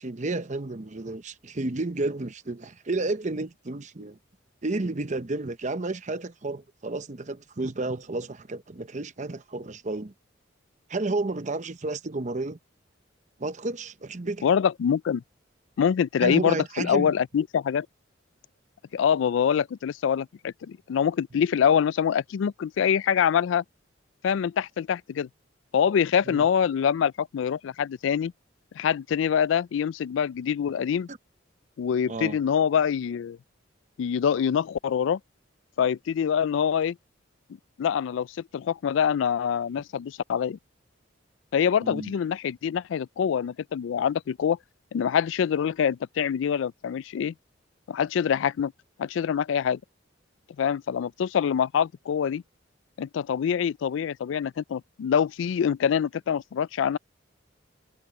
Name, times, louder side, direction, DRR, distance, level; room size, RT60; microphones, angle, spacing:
voice 1, 0.0-4.2 4.6-10.1 10.9-12.6 13.4-14.5 16.2-17.1 26.3-26.5 31.1-31.2 32.1-32.4 41.8-42.1, right 2 dB, 40° right, 0.8 m, -31 dB
voice 2, 14.4-15.2 15.8-17.9 18.9-23.6 24.2-25.3 25.7-28.3 28.8-31.1 31.8-33.4 34.0-35.2 35.8-37.0 37.8-38.3 38.5-40.6 41.5-44.6 44.9-47.3 47.9-48.7 49.0-49.8 50.6-52.4 53.0-57.0, left 8 dB, 70° left, 0.3 m, -25 dB
head